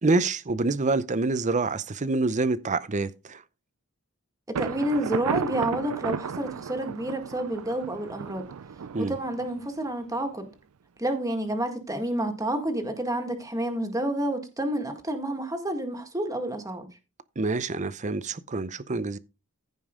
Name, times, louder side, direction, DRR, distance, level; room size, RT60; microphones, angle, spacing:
voice 1, 0.0-3.4 8.9-9.2 17.4-19.2, right 3 dB, 35° right, 0.6 m, -26 dB
voice 2, 4.5-8.5 9.0-10.5 11.0-16.9, right 1 dB, 15° right, 1.8 m, -29 dB
Thunder, 4.5-10.2, right 6 dB, 75° right, 0.5 m, -34 dB
15.0 x 5.3 x 3.7 m
head